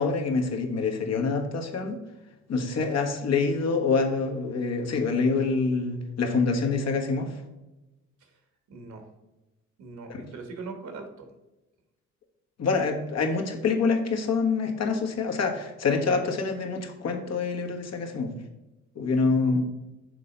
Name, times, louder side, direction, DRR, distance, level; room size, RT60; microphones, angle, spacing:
voice 1, 0.0-2.0 2.5-7.3 10.1-10.2 12.6-18.3 18.9-19.6, left 4 dB, 60° left, 3 dB, 1.4 m, -26 dB
voice 2, 8.7-9.1 9.8-11.3 19.3-19.7, right 3 dB, 70° right, 5 dB, 1.7 m, -40 dB
6.6 x 3.8 x 5.3 m, 1.0 s
cardioid pair, 90°, 30 cm